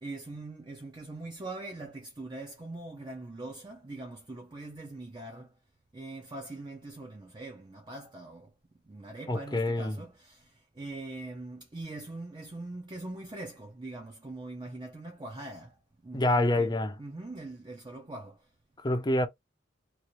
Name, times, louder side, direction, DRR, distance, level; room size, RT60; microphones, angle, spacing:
voice 1, 0.0-5.5 5.9-8.5 8.9-10.4 10.8-15.7 16.0-18.4, right 2 dB, 25° right, 0.6 m, -42 dB
voice 2, 9.3-10.0 16.1-16.9 18.8-19.3, left 1 dB, 20° left, 0.5 m, -26 dB
2.9 x 2.5 x 3.0 m
head